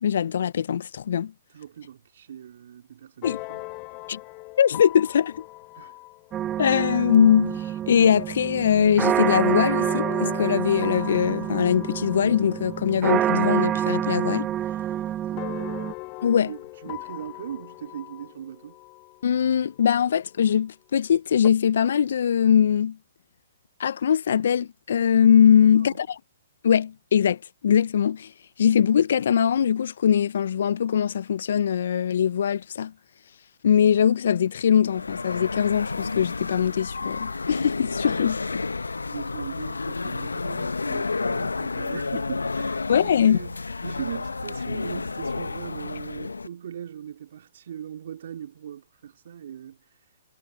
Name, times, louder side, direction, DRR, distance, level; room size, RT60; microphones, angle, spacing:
voice 1, 0.0-1.3 3.2-3.4 4.1-4.2 4.6-5.4 6.6-14.5 16.2-16.5 19.2-23.0 23.8-26.1 26.6-28.3 28.6-32.9 33.6-38.6 42.9-43.4, left 8 dB, 65° left, 0.7 m, -21 dB
voice 2, 1.5-3.7 5.7-6.0 15.3-15.6 16.2-18.8 25.5-26.1 38.1-38.3 39.1-49.8, right 9 dB, 60° right, 2.5 m, -40 dB
sound 1, 3.2-8.0 9.3-13.6 13.9-14.9 15.4-20.3 21.4-21.5, left 24 dB, 30° left, 0.8 m, -40 dB
sound 2, 6.3-15.9, right 11 dB, 20° right, 0.4 m, -27 dB
sound 3, 34.9-46.5, left 3 dB, 85° left, 1.1 m, -30 dB
figure-of-eight pair, 125°, 0 cm